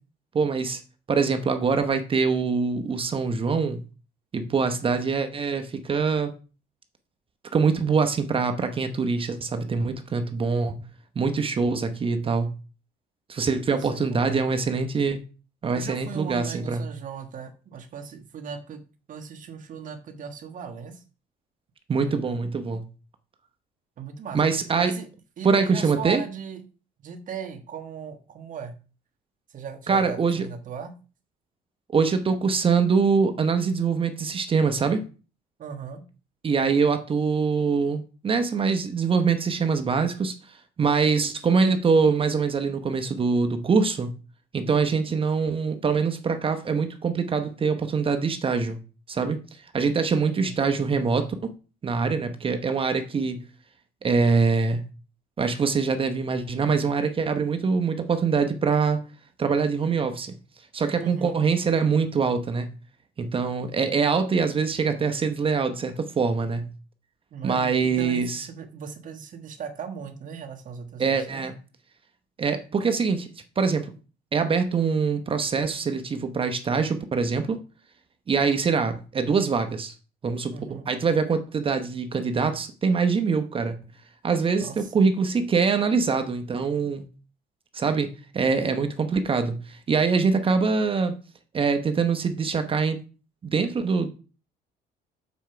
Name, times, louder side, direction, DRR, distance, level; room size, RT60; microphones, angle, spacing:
voice 1, 0.3-0.8 1.1-3.8 4.3-6.3 7.5-10.8 11.2-12.6 13.3-15.2 15.6-16.9 21.9-22.8 24.3-24.9 25.4-26.2 29.9-30.5 31.9-35.0 36.4-40.3 40.8-44.1 44.5-48.8 49.1-49.4 49.7-51.5 51.8-53.4 54.0-54.8 55.4-59.0 59.4-60.3 60.7-62.7 63.2-66.7 67.4-68.5 71.0-71.5 72.4-73.3 73.6-73.9 74.3-77.6 78.3-79.9 80.2-80.5 80.9-83.8 84.2-87.0 87.7-91.2 91.5-93.0 93.4-94.1, right 5 dB, 30° right, 7 dB, 0.9 m, -24 dB
voice 2, 13.7-14.4 15.7-18.8 19.1-21.0 22.0-22.4 24.0-24.4 24.8-25.1 25.4-26.6 27.0-28.7 29.5-30.9 35.6-36.0 44.6-45.0 50.2-50.6 60.9-61.4 67.3-71.4 80.5-80.8 84.6-84.9, right 6 dB, 50° right, 5 dB, 1.4 m, -38 dB
7.2 x 4.5 x 5.7 m, 0.35 s
cardioid pair, 110°, 17 cm